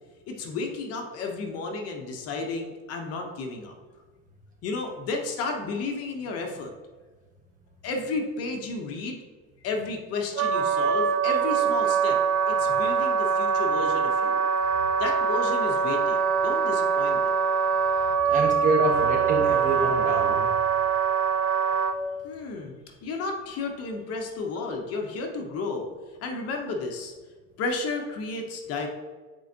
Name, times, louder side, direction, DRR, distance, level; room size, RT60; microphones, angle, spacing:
voice 1, 0.3-3.7 4.6-6.7 7.8-9.2 9.6-12.2 12.5-14.4 15.0-17.4 22.2-22.7 23.0-25.9 26.2-27.1 27.6-28.9, left 3 dB, 45° left, 2 dB, 0.8 m, -32 dB
Wind instrument woodwind instrument, 10.4-22.0, right 6 dB, 70° right, 0.6 m, -23 dB
voice 2, 18.2-20.5, right 2 dB, 25° right, -2 dB, 1.4 m, -26 dB
9.1 x 4.4 x 2.7 m, 1.4 s
cardioid pair, 150°, 33 cm